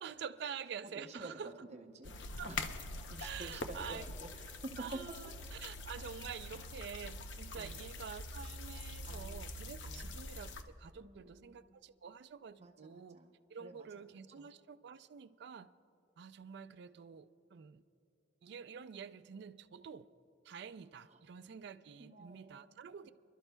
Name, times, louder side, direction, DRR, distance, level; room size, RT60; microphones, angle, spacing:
voice 1, 0.0-1.5 2.4-2.7 3.2-4.1 4.8-13.2 13.5-15.7 16.2-17.8 18.4-20.1 20.4-23.1, right 7 dB, 65° right, 11 dB, 0.4 m, -48 dB
voice 2, 1.0-1.3 1.6-2.1 2.4-2.6 3.1-4.7 7.5-7.8 9.0-9.5 9.8-10.2 11.0-11.7 12.6-13.3 13.6-13.9 14.4-14.5 21.1-21.2 22.0-22.8 23.0-23.1, right 2 dB, 40° right, 4 dB, 0.7 m, -51 dB
sound 1, 2.0-10.6, left 2 dB, 85° left, 0.7 m, -44 dB
29.0 x 12.0 x 2.2 m, 2.6 s
head